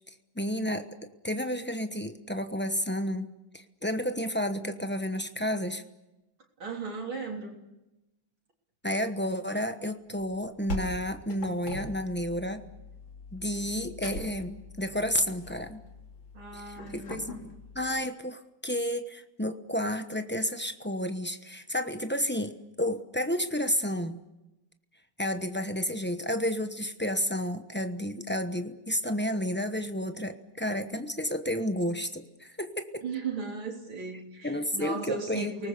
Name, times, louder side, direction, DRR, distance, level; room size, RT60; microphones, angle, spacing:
voice 1, 0.4-3.3 3.5-5.8 8.8-12.7 13.3-15.8 16.5-17.4 17.7-24.2 25.2-33.0 34.4-35.5, equal, 15° left, 8 dB, 0.4 m, -31 dB
voice 2, 6.6-7.6 16.3-17.3 33.0-35.7, right 4 dB, 90° right, 0 dB, 4.2 m, -36 dB
sound 1, 10.2-17.9, left 1 dB, 70° left, 3.6 m, -42 dB
29.5 x 19.5 x 6.8 m, 0.95 s
omnidirectional pair, 2.2 m